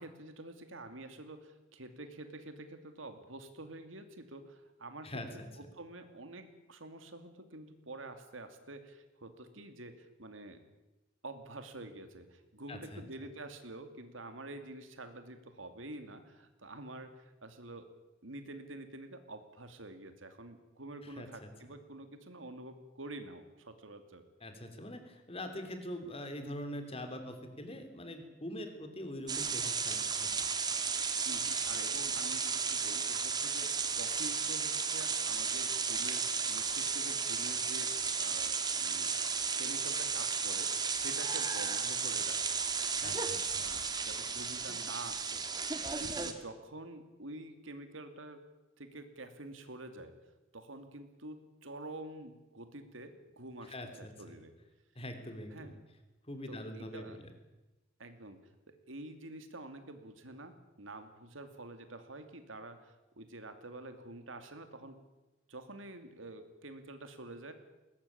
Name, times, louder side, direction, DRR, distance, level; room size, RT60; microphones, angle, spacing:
voice 1, 0.0-5.1 5.7-10.6 11.2-17.9 18.2-24.2 31.2-39.1 39.6-42.6 43.0-45.4 46.0-48.4 48.8-50.1 50.5-54.5 55.5-55.7 56.5-57.2 58.0-58.4 58.7-65.0 65.5-67.5, right 2 dB, 85° right, 8 dB, 2.6 m, -48 dB
voice 2, 5.0-5.5 12.7-13.0 21.0-21.5 24.4-30.3 43.0-43.6 53.7-54.1 54.9-55.8 56.3-57.2, left 1 dB, 30° left, 6 dB, 3.4 m, -43 dB
sound 1, 29.3-46.3, right 5 dB, 20° right, 1.9 m, -34 dB
21.0 x 19.0 x 8.7 m, 1.1 s
head